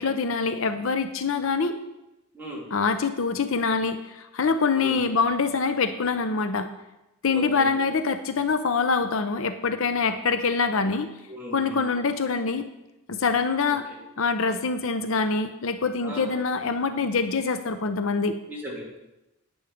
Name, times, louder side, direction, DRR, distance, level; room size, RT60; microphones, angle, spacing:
voice 1, 0.0-1.8 2.7-6.7 7.2-11.1 11.5-12.7 13.1-13.9 14.2-18.4, left 4 dB, 65° left, 9 dB, 0.6 m, -25 dB
voice 2, 7.3-7.7 11.3-11.8 16.0-16.2 18.5-19.0, left 1 dB, 10° right, -6 dB, 3.3 m, -36 dB
10.0 x 9.6 x 5.1 m, 0.95 s
head